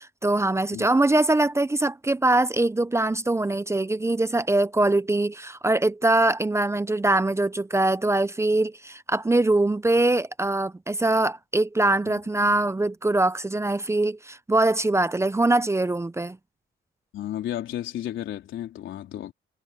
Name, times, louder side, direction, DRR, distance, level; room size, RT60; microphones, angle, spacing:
voice 1, 0.0-16.4, right 2 dB, 15° right, 0.7 m, -23 dB
voice 2, 17.1-19.3, left 12 dB, 85° left, 3.9 m, -33 dB
cardioid pair, 90°, 19 cm